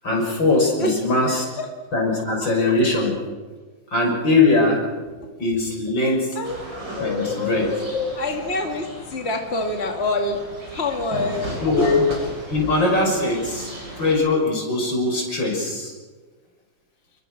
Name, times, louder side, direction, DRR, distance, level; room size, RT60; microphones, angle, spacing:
voice 1, 0.0-1.5 1.9-3.1 3.9-4.8 5.4-6.4 7.0-8.0 11.6-12.0 12.5-15.9, left 2 dB, 75° left, 1 dB, 7.1 m, -21 dB
voice 2, 0.8-1.7 2.4-2.5 5.2-5.3 6.3-6.6 7.0-7.5 8.2-11.9, left 2 dB, 35° left, 2 dB, 2.6 m, -27 dB
sound 1, 6.4-14.1, equal, 70° right, 8.2 m, -36 dB
29.0 x 23.0 x 6.6 m, 1.4 s
omnidirectional pair, 2.1 m